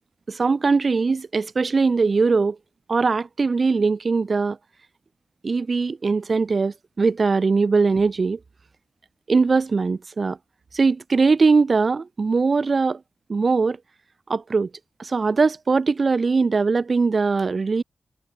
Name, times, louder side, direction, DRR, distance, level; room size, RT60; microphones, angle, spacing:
voice 1, 0.3-2.6 2.9-4.6 5.4-8.4 9.3-10.4 10.7-13.0 13.3-13.8 14.3-14.7 15.0-17.8, right 4 dB, 55° right, 6.1 m, -21 dB
cardioid pair, 45°, 0 cm